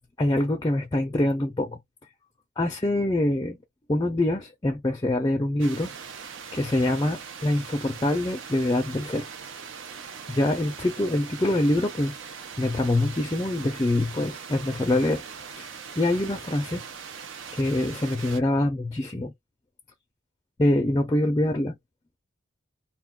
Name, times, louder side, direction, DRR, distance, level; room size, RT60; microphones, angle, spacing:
voice 1, 0.2-1.8 2.6-3.6 3.9-5.9 6.5-9.3 10.3-12.2 12.6-15.2 15.5-15.7 16.0-16.8 17.5-19.3 20.6-21.7, left 1 dB, 20° left, 0.4 m, -25 dB
sound 1, 5.6-18.4, right 6 dB, 65° right, 0.5 m, -41 dB
2.2 x 2.2 x 3.5 m
head